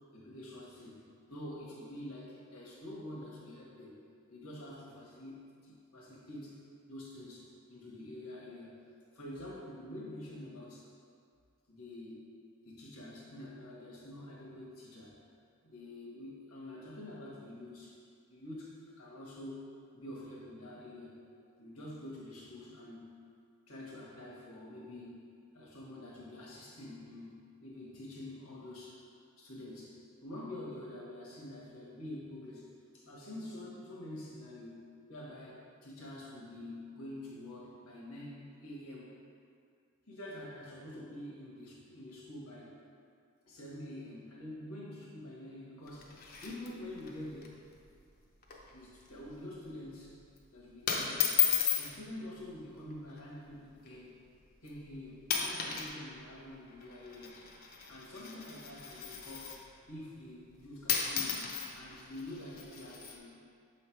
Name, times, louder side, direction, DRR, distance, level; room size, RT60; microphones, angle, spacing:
voice 1, 0.1-4.0 4.3-6.6 6.9-8.8 9.1-10.9 11.7-12.2 12.6-15.2 15.6-18.0 18.3-19.6 19.9-21.2 21.6-23.1 23.7-25.3 25.5-29.0 29.4-39.2 40.1-42.8 43.5-46.2 46.4-47.5 48.7-50.1 50.5-51.3 51.7-54.2 54.6-57.4 57.9-59.6 59.9-61.5 61.7-63.4, left 1 dB, 85° left, -4 dB, 1.3 m, -47 dB
sound 1, 45.9-47.1 47.4-47.5 47.8-48.1 48.4-48.7 49.1-49.4 50.1-50.4 50.9-51.9 52.9-53.2 53.9-54.0 54.7-54.9 55.2-55.9 56.2-59.7 60.5-60.6 60.9-63.2, left 8 dB, 45° left, 0.7 m, -34 dB
6.5 x 3.3 x 4.5 m, 2.3 s
head